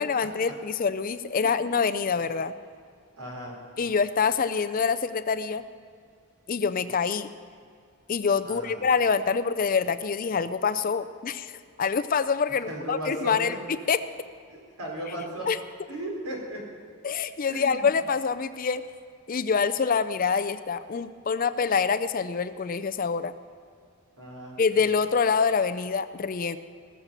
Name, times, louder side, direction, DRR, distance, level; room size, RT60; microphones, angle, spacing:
voice 1, 0.0-2.5 3.8-5.6 6.5-7.3 8.1-14.0 15.5-15.6 17.0-18.8 19.3-23.3 24.6-26.6, left 5 dB, 40° left, 12 dB, 0.4 m, -26 dB
voice 2, 3.2-3.5 8.4-8.8 12.7-13.6 14.8-15.4 15.9-16.6 17.5-17.9 24.2-24.6, right 1 dB, 80° right, -2 dB, 4.1 m, -35 dB
19.0 x 7.3 x 6.8 m, 2.3 s
head